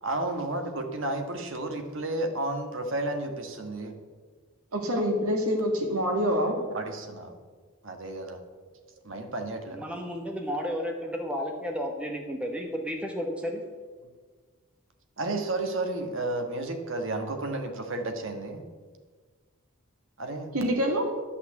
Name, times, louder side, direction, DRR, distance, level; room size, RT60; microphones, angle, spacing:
voice 1, 0.0-3.9 4.9-5.0 6.7-7.4 7.8-8.4 9.0-10.0 15.2-18.6 20.2-20.5, right 2 dB, 60° right, 5 dB, 1.4 m, -32 dB
voice 2, 4.7-6.6 20.5-21.1, equal, 80° right, 2 dB, 2.1 m, -26 dB
voice 3, 9.7-13.6, equal, 5° right, 1 dB, 1.0 m, -32 dB
11.0 x 5.8 x 8.1 m, 1.5 s
head